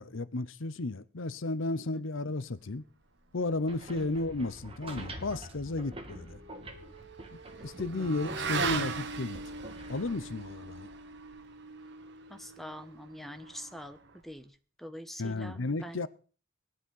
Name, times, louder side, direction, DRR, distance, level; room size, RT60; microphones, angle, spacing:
voice 1, 0.0-2.8 3.3-6.4 7.3-9.4 9.9-10.9 15.2-16.1, left 2 dB, 65° left, 0.8 m, -33 dB
sound 1, 3.4-11.5, right 1 dB, 30° right, 2.6 m, -47 dB
Motorcycle / Accelerating revving vroom, 5.5-14.3, right 4 dB, 60° right, 2.0 m, -40 dB
voice 2, 12.3-16.1, equal, ahead, 1.5 m, -45 dB
18.5 x 11.0 x 5.5 m
head